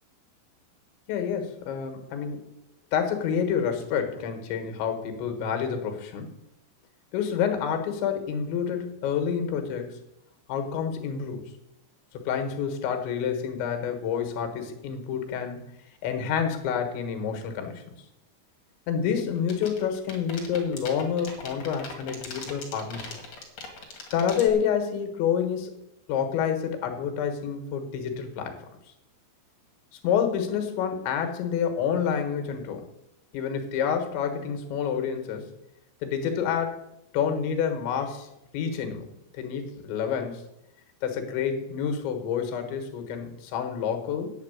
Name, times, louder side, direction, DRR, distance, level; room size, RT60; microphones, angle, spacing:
voice 1, 1.1-2.4 2.9-6.3 7.1-10.0 10.5-11.5 12.1-15.8 16.0-17.8 18.9-23.1 24.1-25.7 26.1-28.6 30.0-32.9 33.3-35.5 36.0-36.8 37.1-39.1 39.3-40.4 41.0-44.3, left 7 dB, 80° left, 6 dB, 3.8 m, -28 dB
sound 1, 19.4-24.5, left 6 dB, 45° left, 2.8 m, -39 dB
9.0 x 7.3 x 9.0 m, 0.85 s
omnidirectional pair, 5.2 m